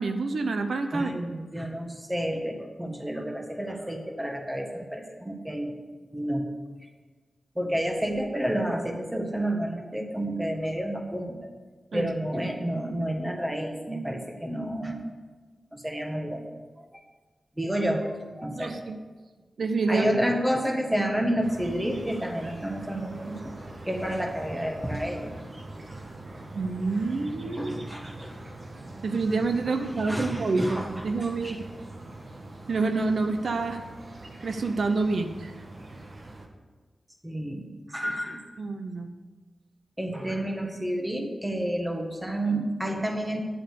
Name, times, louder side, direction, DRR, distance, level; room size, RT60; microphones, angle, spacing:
voice 1, 0.0-1.1 11.9-12.5 18.5-19.0 19.6-20.1 26.5-27.7 29.0-31.6 32.7-33.8 34.4-35.5 38.6-39.1, right 3 dB, 75° right, 7 dB, 0.8 m, -28 dB
voice 2, 0.9-5.7 6.1-6.5 7.5-11.4 11.9-15.0 15.7-16.4 16.8-16.9 17.6-18.8 19.9-23.4 23.8-25.3 27.6-28.3 29.7-31.6 37.2-38.4 40.0-43.4, right 1 dB, 10° right, 3 dB, 1.6 m, -30 dB
sound 1, 21.4-36.5, right 2 dB, 45° right, 1.5 m, -43 dB
10.5 x 7.5 x 6.8 m, 1.3 s
wide cardioid pair, 100°, 0 cm